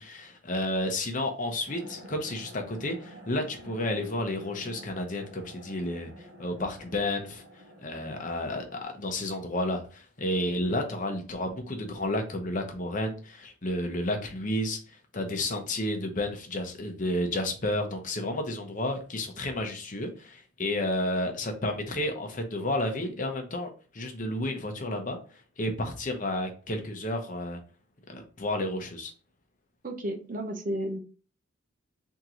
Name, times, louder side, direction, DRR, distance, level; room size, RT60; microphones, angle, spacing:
voice 1, 0.0-7.4 7.8-14.8 15.1-25.2 25.6-27.6 28.1-29.1, left 1 dB, 40° left, 4 dB, 0.8 m, -31 dB
sound 1, 1.7-8.8, right 1 dB, 90° right, 1.3 m, -49 dB
voice 2, 29.8-31.0, right 1 dB, 40° right, 5 dB, 0.6 m, -32 dB
3.6 x 3.0 x 3.8 m, 0.37 s
head